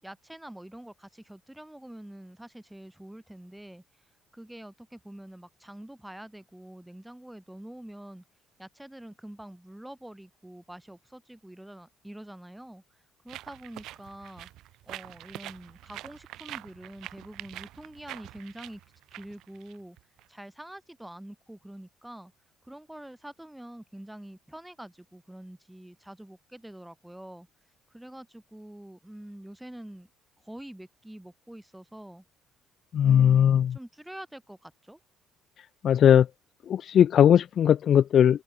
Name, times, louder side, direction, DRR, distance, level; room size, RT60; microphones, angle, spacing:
voice 1, 0.0-3.8 4.3-8.2 8.6-12.8 13.2-14.5 14.9-18.8 19.1-20.0 20.3-22.3 22.6-27.5 27.9-30.1 30.4-32.2 33.0-35.0, right 1 dB, 5° right, 6.5 m, -45 dB
sound 1, 13.3-20.3, right 15 dB, 70° right, 4.4 m, -45 dB
voice 2, 32.9-33.8 35.8-36.3 36.7-38.4, left 9 dB, 40° left, 0.4 m, -19 dB
open air
cardioid pair, 160°, 0 cm